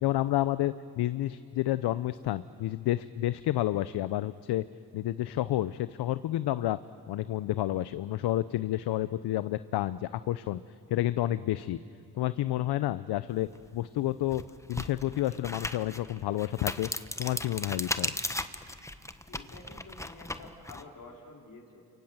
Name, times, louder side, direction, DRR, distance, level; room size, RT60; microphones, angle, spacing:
voice 1, 0.0-4.6 4.9-6.8 7.1-10.6 10.9-11.8 12.2-13.5 13.7-14.4 14.7-16.9 17.2-18.1, left 14 dB, 70° left, 14 dB, 0.8 m, -30 dB
sound 1, 13.5-13.7 14.2-20.8, left 1 dB, 5° left, 1.2 m, -36 dB
voice 2, 19.3-21.8, left 3 dB, 50° left, -1 dB, 4.2 m, -49 dB
29.0 x 24.0 x 8.0 m, 2.3 s
supercardioid pair, 65°, 41 cm